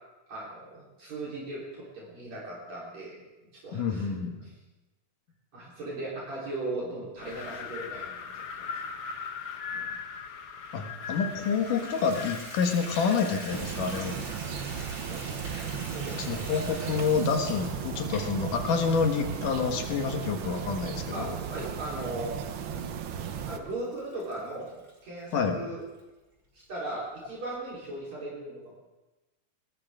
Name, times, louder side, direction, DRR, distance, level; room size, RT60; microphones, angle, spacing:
voice 1, 0.3-4.1 4.4-4.5 5.5-9.0 9.7-9.9 15.1-15.2 15.9-16.5 21.1-22.4 23.5-25.8 26.5-28.7, right 2 dB, 60° right, -6 dB, 5.1 m, -38 dB
voice 2, 3.7-4.4 10.7-14.2 16.2-21.4 25.3-25.6, left 5 dB, 85° left, 4 dB, 3.1 m, -28 dB
Wind, 7.2-13.6, left 6 dB, 60° left, 1.7 m, -39 dB
Water tap faucet / Bathtub (filling or washing), 11.0-25.4 26.0-26.1 26.6-26.7 27.0-27.1, right 1 dB, 35° right, 5.0 m, -46 dB
sound 1, 13.5-23.6, right 7 dB, 85° right, 1.1 m, -35 dB
20.0 x 19.5 x 3.7 m, 1.1 s
omnidirectional pair, 3.6 m